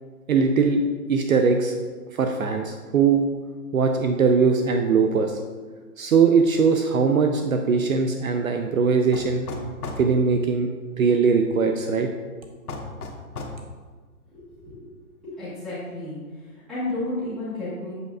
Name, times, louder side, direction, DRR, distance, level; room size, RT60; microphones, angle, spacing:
voice 1, 0.3-0.8 1.1-1.7 2.1-3.2 3.7-5.4 6.0-9.5 10.0-10.7 11.0-12.1, right 5 dB, 65° right, 5 dB, 0.6 m, -20 dB
sound 1, 9.1-10.1 12.7-13.6, left 3 dB, 75° left, 1.2 m, -34 dB
voice 2, 14.6-14.9 15.2-16.2 16.7-17.9, left 2 dB, ahead, -18 dB, 1.2 m, -31 dB
8.0 x 5.9 x 2.3 m, 1.5 s
hypercardioid pair, 175°, 45 cm